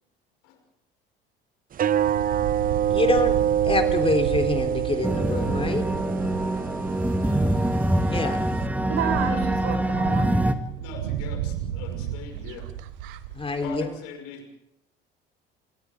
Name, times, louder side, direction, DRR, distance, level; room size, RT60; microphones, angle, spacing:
sound 1, 1.7-8.7, right 10 dB, 30° right, 0.7 m, -26 dB
sound 2, 1.9-7.5 8.0-8.1 8.3-13.9, right 10 dB, 65° right, 1.4 m, -34 dB
voice 1, 2.9-3.4 3.6-5.9 8.0-8.5 13.3-13.9, left 3 dB, 20° left, 5 dB, 3.7 m, -26 dB
sound 3, 5.0-10.5, right 1 dB, 5° right, 2.0 m, -24 dB
voice 2, 7.2-7.6 10.7-12.7 13.6-14.4, left 5 dB, 60° left, 5 dB, 5.7 m, -40 dB
voice 3, 8.9-10.3, right 8 dB, 50° right, 5 dB, 5.3 m, -29 dB
28.5 x 25.5 x 3.7 m, 0.78 s
figure-of-eight pair, 60°, 29 cm